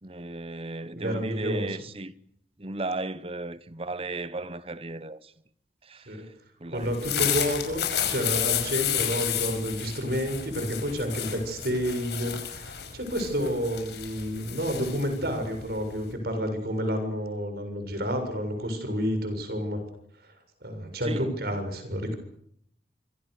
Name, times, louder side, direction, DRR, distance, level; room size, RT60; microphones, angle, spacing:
voice 1, 0.0-2.1 2.6-5.3 5.8-6.3 6.6-7.1 21.0-21.3, right 2 dB, 35° right, 1.1 m, -35 dB
voice 2, 1.0-1.8 6.1-6.2 6.7-19.8 20.6-22.1, equal, 60° right, 7.1 m, -30 dB
sound 1, 6.8-16.1, left 10 dB, 70° left, 5.8 m, -31 dB
26.0 x 26.0 x 6.7 m
head